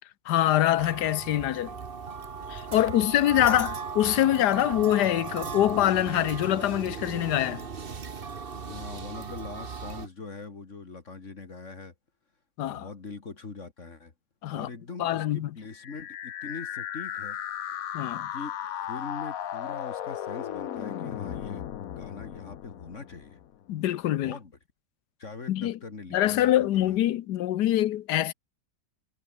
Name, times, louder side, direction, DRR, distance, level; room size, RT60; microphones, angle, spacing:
voice 1, 0.3-1.7 2.5-7.6 12.6-12.9 14.4-14.7 15.0-15.5 17.9-18.3 23.7-24.3 25.5-25.8 26.1-28.3, left 13 dB, 85° left, 1.3 m, -24 dB
sound 1, 0.8-10.1, right 5 dB, 35° right, 1.4 m, -37 dB
voice 2, 2.7-3.5 8.5-11.9 12.6-14.1 14.5-17.4 17.7-17.8 18.3-18.5 18.8-21.7 21.9-23.4 24.2-24.5 25.2-27.0, left 4 dB, 45° left, 2.4 m, -42 dB
sound 2, 15.7-23.6, left 10 dB, 65° left, 1.2 m, -36 dB
omnidirectional pair, 1.7 m